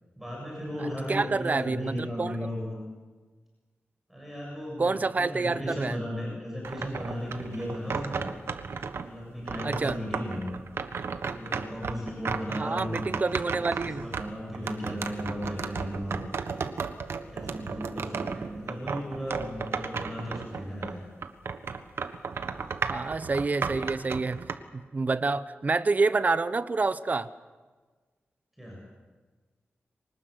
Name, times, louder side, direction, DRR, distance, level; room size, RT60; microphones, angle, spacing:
voice 1, 0.2-2.8 4.1-8.2 9.0-10.6 11.2-13.1 13.4-13.5 13.8-16.2 17.2-21.0 28.6-28.8, equal, 5° right, -3 dB, 7.2 m, -35 dB
voice 2, 1.1-2.4 4.8-6.0 9.6-10.0 12.5-14.1 22.9-24.4 24.7-27.3, right 3 dB, 40° right, 15 dB, 0.9 m, -28 dB
sound 1, 6.6-9.1 9.5-21.0 21.2-24.5, right 5 dB, 75° right, 1.4 m, -34 dB
24.5 x 19.5 x 8.0 m, 1.4 s
wide cardioid pair, 110°, 4 cm